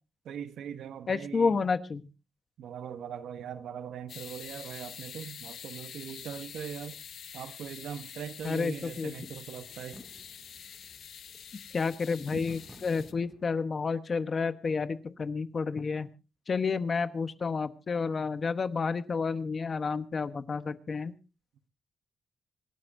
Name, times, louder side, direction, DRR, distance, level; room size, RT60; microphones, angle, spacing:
voice 1, 0.2-1.6 2.6-7.0 7.3-10.0 12.3-12.4, right 8 dB, 85° right, 1.1 m, -41 dB
voice 2, 1.1-2.0 8.4-9.1 11.7-16.1 16.5-21.1, left 5 dB, 40° left, 1.0 m, -30 dB
sound 1, 4.1-13.1, left 8 dB, 70° left, 1.0 m, -46 dB
sound 2, 8.4-13.6, right 1 dB, 10° right, 2.3 m, -57 dB
26.5 x 12.0 x 2.7 m
cardioid pair, 115°, 0 cm